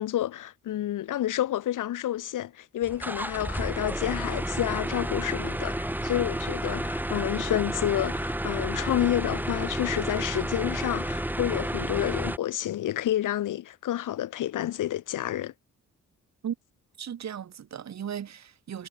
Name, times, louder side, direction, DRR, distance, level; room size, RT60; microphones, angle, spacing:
voice 1, 0.0-15.5, left 12 dB, 85° left, 1.6 m, -29 dB
sound 1, 2.8-12.4, right 1 dB, 5° right, 4.6 m, -31 dB
voice 2, 17.0-18.9, right 9 dB, 60° right, 3.6 m, -36 dB
cardioid pair, 110°, 31 cm